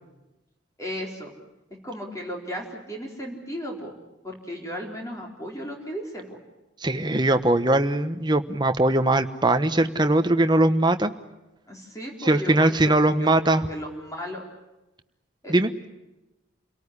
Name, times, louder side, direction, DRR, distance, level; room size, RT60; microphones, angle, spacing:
voice 1, 0.8-1.3 1.8-3.9 4.2-6.4 11.7-14.4 15.4-15.5, equal, 15° left, 0 dB, 4.2 m, -35 dB
voice 2, 6.8-11.1 12.2-13.6 15.5-15.7, right 1 dB, 20° right, 8 dB, 1.1 m, -21 dB
29.0 x 18.5 x 9.8 m, 1.0 s
head